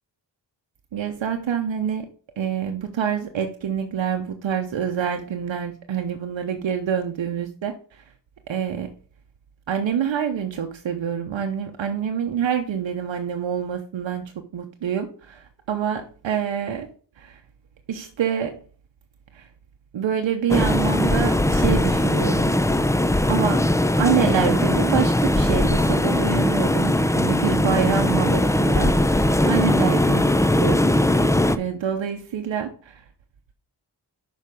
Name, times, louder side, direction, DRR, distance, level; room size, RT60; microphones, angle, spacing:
voice 1, 0.9-2.1 2.4-7.7 8.5-8.9 9.7-14.2 14.5-16.9 17.2-17.4 17.9-18.6 19.3-19.4 19.9-22.5 23.3-23.6 24.0-30.9 31.6-32.7, right 8 dB, 80° right, 4 dB, 0.8 m, -26 dB
sound 1, 20.5-31.6, left 1 dB, 5° left, 0.5 m, -20 dB
6.5 x 4.7 x 5.2 m, 0.42 s
cardioid pair, 45°, 45 cm